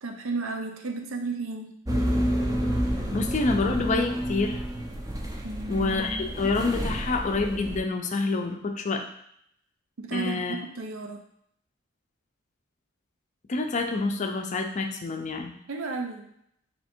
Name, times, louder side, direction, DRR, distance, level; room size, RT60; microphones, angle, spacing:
voice 1, 0.0-1.7 5.4-5.9 10.0-11.2 15.7-16.2, right 3 dB, 90° right, 3 dB, 0.6 m, -33 dB
sound 1, 1.9-7.8, equal, 15° right, 0.5 m, -29 dB
voice 2, 3.1-4.6 5.7-9.1 10.1-10.6 13.5-15.5, left 3 dB, 35° left, 5 dB, 0.4 m, -27 dB
3.3 x 2.8 x 4.3 m, 0.71 s
head